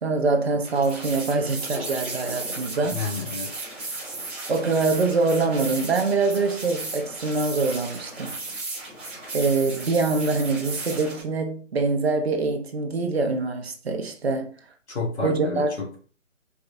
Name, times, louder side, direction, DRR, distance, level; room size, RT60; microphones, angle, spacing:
voice 1, 0.0-3.0 4.5-8.4 9.3-14.5 15.2-15.7, right 3 dB, 55° right, 1.0 m, -24 dB
sound 1, 0.6-11.2, right 2 dB, 10° right, 0.9 m, -35 dB
voice 2, 2.9-3.5 14.9-16.0, left 4 dB, 60° left, 1.9 m, -30 dB
4.6 x 3.2 x 2.7 m
figure-of-eight pair, 160°, 38 cm